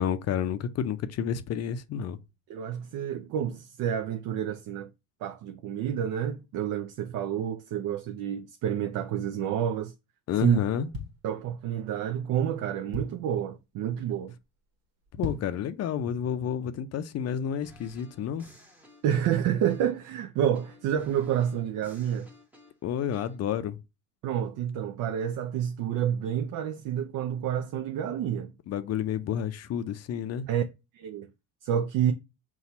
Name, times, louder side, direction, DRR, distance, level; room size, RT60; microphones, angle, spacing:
voice 1, 0.0-2.2 10.3-10.9 15.1-18.5 22.8-23.8 28.7-30.5, left 8 dB, 40° left, 0.5 m, -30 dB
voice 2, 2.5-4.9 5.2-9.9 10.4-10.6 11.2-14.3 19.0-22.3 24.2-28.5 30.5-30.7 30.9-31.3 31.6-32.1, right 9 dB, 50° right, 0.5 m, -29 dB
sound 1, 10.9-11.9 12.4-12.5 12.6-13.4 13.9-14.1 14.4-14.5 15.0-15.7 16.1-16.2, left 1 dB, 75° right, 1.2 m, -38 dB
sound 2, 17.6-20.1 20.5-23.4, equal, 5° right, 1.0 m, -54 dB
4.2 x 2.4 x 4.1 m
supercardioid pair, 95°, 41 cm